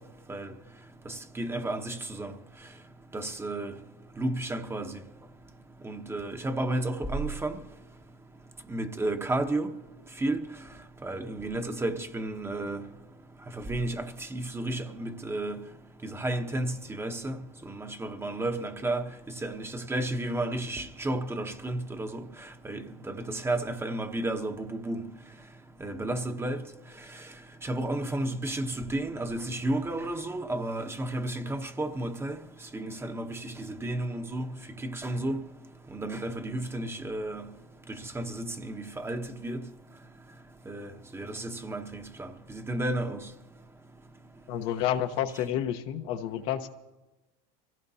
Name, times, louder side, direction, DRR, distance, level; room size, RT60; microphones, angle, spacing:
voice 1, 1.0-2.3 3.1-3.7 4.2-5.0 5.8-7.6 8.7-9.7 10.2-10.5 11.0-12.8 13.6-15.6 16.0-17.4 17.6-19.1 19.4-25.1 25.8-26.6 27.6-32.4 32.7-34.5 34.8-35.4 35.9-37.5 37.9-39.6 40.7-43.3, right 1 dB, 10° right, 0.9 m, -32 dB
voice 2, 44.5-46.7, left 10 dB, 70° left, 1.1 m, -30 dB
25.0 x 16.5 x 2.8 m
supercardioid pair, 120°, 21 cm